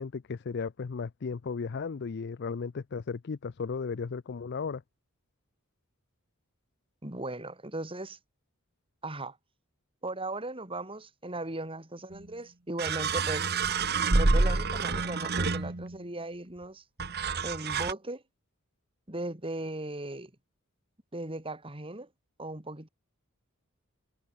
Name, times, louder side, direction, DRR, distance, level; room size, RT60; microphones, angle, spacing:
voice 1, 0.0-4.8, left 5 dB, 50° left, 0.5 m, -35 dB
voice 2, 7.0-8.2 9.0-9.4 10.0-13.5 14.1-16.8 17.4-18.2 19.1-20.3 21.1-22.1 22.4-22.9, right 2 dB, 25° right, 3.2 m, -37 dB
sound 1, 12.1-12.2 12.8-16.0 17.0-17.9, right 3 dB, 50° right, 1.4 m, -28 dB
head